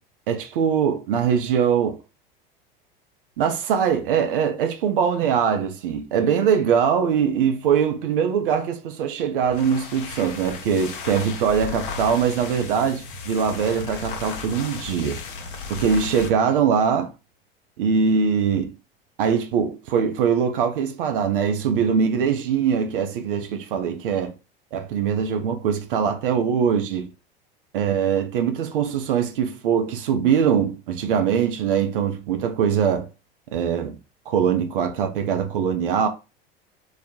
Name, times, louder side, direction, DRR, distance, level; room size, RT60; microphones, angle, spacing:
voice 1, 0.3-2.0 3.4-15.2 15.7-17.1 17.8-18.7 19.2-24.3 24.7-27.1 27.7-33.1 33.5-34.0 34.3-36.1, right 7 dB, 65° right, 0.4 m, -22 dB
sound 1, 9.4-16.4, left 4 dB, 60° left, 0.6 m, -35 dB
2.2 x 2.0 x 2.6 m
figure-of-eight pair, 75°, 30 cm